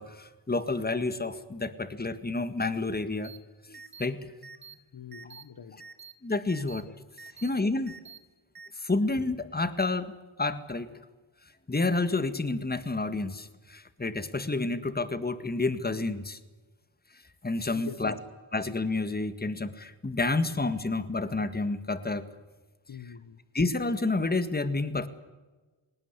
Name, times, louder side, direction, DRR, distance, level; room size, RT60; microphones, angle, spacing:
voice 1, 0.0-3.3 3.7-4.3 6.2-6.9 7.4-7.9 8.8-10.1 10.4-10.9 11.7-16.4 17.4-18.1 18.5-22.2 23.5-25.1, left 3 dB, 20° left, 12 dB, 1.9 m, -29 dB
sound 1, 3.2-3.4 3.7-4.1 4.4-4.7 5.1-5.4 5.8-6.1 6.5-6.8 7.2-7.5 7.9-8.2 8.5-8.7, right 5 dB, 45° right, 2.2 m, -47 dB
voice 2, 4.9-5.8 6.6-6.7 7.3-7.4 17.8-18.2 22.9-23.4, left 7 dB, 45° left, 11 dB, 1.3 m, -44 dB
19.5 x 18.5 x 9.8 m, 1.2 s
cardioid pair, 70°, 49 cm